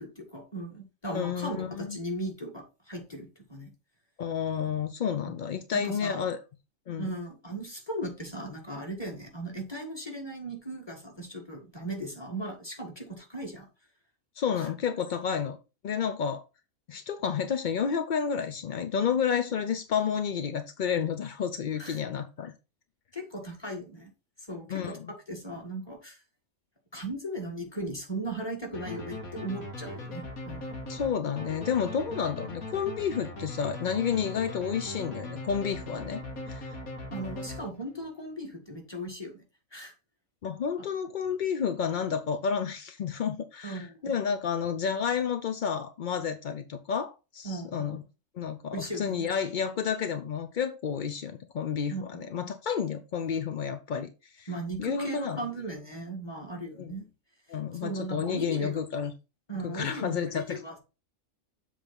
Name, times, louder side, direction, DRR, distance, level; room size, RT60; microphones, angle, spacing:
voice 1, 0.0-3.7 5.7-6.2 7.0-13.7 21.8-22.0 23.1-24.1 24.4-26.2 26.9-30.8 37.1-39.4 39.7-39.9 43.6-44.1 47.4-48.0 48.7-49.3 51.9-52.2 54.5-57.1 57.8-58.8 59.5-60.8, right 1 dB, 20° left, 1.9 m, -37 dB
voice 2, 1.1-2.0 4.2-6.4 6.9-7.1 14.4-15.6 15.8-16.4 16.9-22.5 24.7-25.1 30.9-36.2 36.5-36.7 40.4-48.0 48.4-54.5 54.8-55.4 56.8-56.9 57.5-59.1 59.6-60.6, left 7 dB, 60° left, 0.5 m, -30 dB
sound 1, 28.7-38.1, left 1 dB, 85° left, 2.0 m, -40 dB
7.5 x 3.4 x 5.2 m
omnidirectional pair, 1.5 m